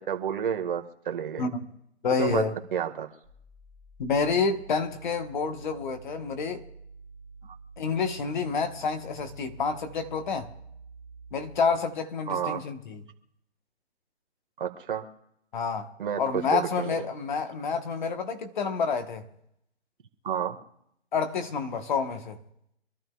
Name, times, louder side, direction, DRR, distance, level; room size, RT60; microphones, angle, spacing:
voice 1, 0.1-1.5 2.2-2.4 2.7-3.1 7.5-7.6 12.3-12.6 14.6-15.1 16.0-17.0 20.2-20.6, right 8 dB, 50° right, 1.8 m, -30 dB
voice 2, 2.0-2.5 4.0-6.6 7.8-10.5 11.3-13.0 15.5-15.9 16.2-19.2 21.1-22.4, left 5 dB, 45° left, 1.3 m, -28 dB
sound 1, 3.2-11.8, right 4 dB, 35° right, 1.3 m, -48 dB
26.0 x 12.5 x 2.4 m
hypercardioid pair, 155°, 34 cm